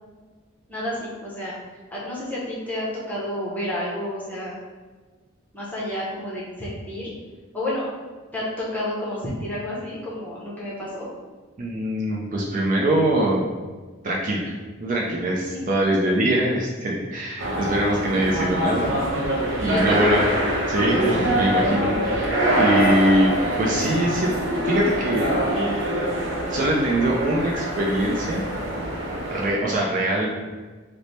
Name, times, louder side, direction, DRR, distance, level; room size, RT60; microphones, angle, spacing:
voice 1, 0.7-1.5 1.9-4.5 5.5-7.1 7.5-7.9 8.3-11.1 15.5-16.0 19.6-20.4, left 1 dB, 10° left, -7 dB, 0.7 m, -30 dB
voice 2, 11.6-13.4 14.0-14.5 14.8-18.9 19.6-20.2 20.7-23.3 23.6-25.3 26.5-28.4 29.3-30.3, right 1 dB, 40° right, -2 dB, 0.4 m, -23 dB
sound 1, 17.4-29.6, right 1 dB, 60° right, 0.7 m, -24 dB
3.2 x 2.0 x 4.1 m, 1.4 s
head